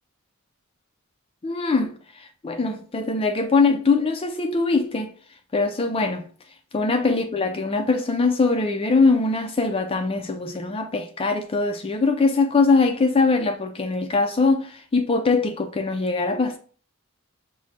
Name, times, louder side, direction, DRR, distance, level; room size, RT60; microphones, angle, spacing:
voice 1, 1.4-5.1 5.5-6.2 6.7-16.6, left 3 dB, 25° left, 0.4 m, -22 dB
6.1 x 2.1 x 4.0 m
head